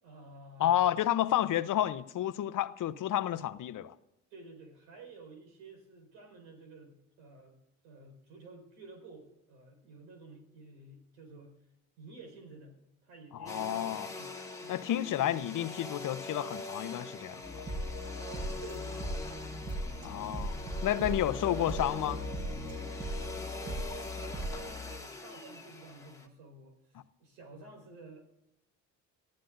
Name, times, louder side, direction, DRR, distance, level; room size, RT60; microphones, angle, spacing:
voice 1, 0.0-1.0 4.3-7.6 7.8-11.6 12.0-14.3 14.6-14.8 18.2-19.3 19.8-21.2 23.2-23.8 24.2-28.3, right 3 dB, 90° right, 4.9 m, -52 dB
voice 2, 0.6-3.9 13.3-14.1 14.7-17.6 20.0-20.5 20.8-22.2, left 12 dB, 60° left, 0.8 m, -30 dB
Domestic sounds home sounds, 13.5-26.3, left 3 dB, 10° left, 1.9 m, -44 dB
sound 1, 17.4-25.0, equal, 40° right, 5.4 m, -38 dB
23.0 x 15.0 x 2.6 m
supercardioid pair, 70°, 37 cm